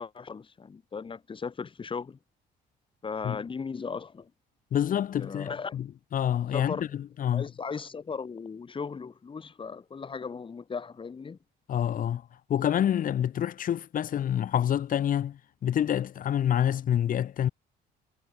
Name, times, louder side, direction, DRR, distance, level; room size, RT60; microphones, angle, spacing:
voice 1, 0.0-2.2 3.0-4.3 5.1-5.8 6.5-6.9 7.3-11.4, left 5 dB, 30° left, 7.7 m, -37 dB
voice 2, 4.7-7.5 11.7-12.2 12.5-17.5, left 10 dB, 55° left, 3.7 m, -27 dB
cardioid pair, 110°, 17 cm